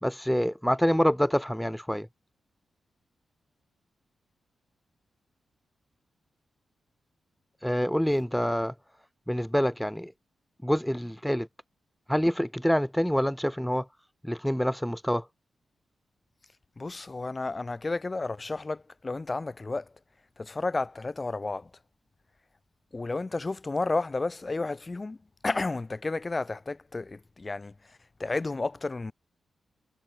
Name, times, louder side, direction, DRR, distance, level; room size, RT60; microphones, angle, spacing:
voice 1, 0.0-2.1 7.6-8.7 9.3-10.1 10.6-11.5 12.1-13.9 14.2-15.3, equal, ahead, 2.3 m, -26 dB
voice 2, 16.8-19.9 20.4-21.7 22.9-25.2 25.4-29.1, left 3 dB, 25° left, 6.0 m, -32 dB
wide cardioid pair, 145°, 0 cm